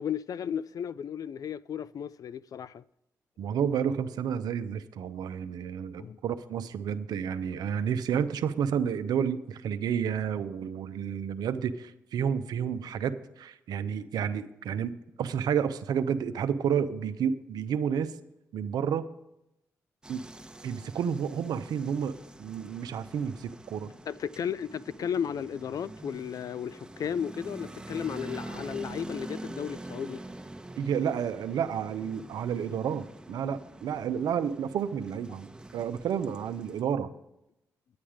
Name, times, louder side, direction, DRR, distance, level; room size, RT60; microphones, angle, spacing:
voice 1, 0.0-2.8 6.0-6.2 24.1-30.2, left 8 dB, 60° left, 0.4 m, -34 dB
voice 2, 3.4-18.1 18.5-19.1 20.1-20.2 20.6-22.1 22.4-23.9 30.8-37.1, right 8 dB, 75° right, 0.7 m, -30 dB
sound 1, 20.0-36.8, right 1 dB, 10° right, 1.0 m, -45 dB
10.5 x 8.6 x 4.9 m
supercardioid pair, 45°, 7 cm